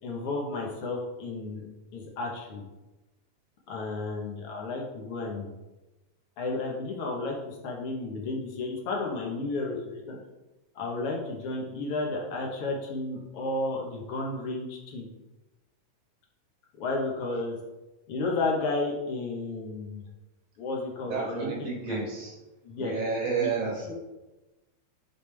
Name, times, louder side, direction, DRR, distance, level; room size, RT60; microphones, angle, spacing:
voice 1, 0.0-1.6 1.9-2.6 3.7-5.5 6.4-10.2 10.7-15.1 16.8-17.5 18.1-20.0 20.6-22.0 22.6-22.9 23.4-23.5 23.8-23.9, left 3 dB, 60° left, -1 dB, 1.6 m, -32 dB
voice 2, 21.0-22.3 22.8-23.9, right 5 dB, 65° right, -2 dB, 1.9 m, -31 dB
7.1 x 4.9 x 3.4 m, 1.1 s
omnidirectional pair, 3.8 m